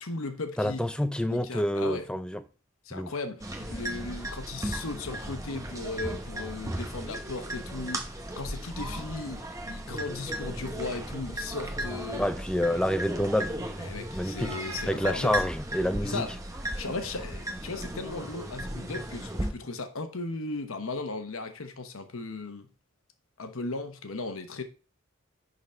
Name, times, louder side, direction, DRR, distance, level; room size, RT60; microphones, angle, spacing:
voice 1, 0.0-0.8 1.3-2.1 2.8-12.3 13.8-15.3 16.0-16.3 16.8-22.7 23.4-24.6, left 3 dB, 80° left, 1.0 m, -36 dB
voice 2, 0.6-2.4 2.9-3.1 12.2-13.6 14.1-14.6 14.9-16.2, left 1 dB, 5° left, 0.4 m, -28 dB
sound 1, 3.4-19.5, right 1 dB, 15° right, 0.9 m, -36 dB
10.5 x 4.0 x 4.3 m
head